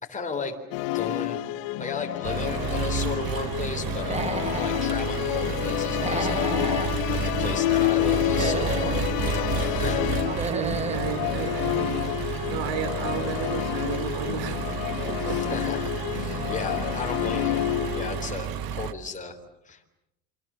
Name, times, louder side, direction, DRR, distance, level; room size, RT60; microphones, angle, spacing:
voice 1, 0.0-0.6 0.9-1.4 1.8-6.5 7.1-10.2 15.3-17.6 17.9-19.4 19.6-19.8, left 4 dB, 15° left, 2 dB, 3.9 m, -35 dB
Musical instrument, 0.7-18.3, left 16 dB, 85° left, 1.4 m, -29 dB
Engine, 2.2-18.9, right 8 dB, 45° right, 1.5 m, -31 dB
Human voice / Animal, 4.0-4.8 5.9-6.9 8.2-9.0 10.2-11.0, right 3 dB, 15° right, 1.2 m, -32 dB
voice 2, 9.9-14.6 15.1-15.4, right 6 dB, 65° right, 11 dB, 4.2 m, -34 dB
28.0 x 24.5 x 7.6 m, 0.87 s
cardioid pair, 115°, 48 cm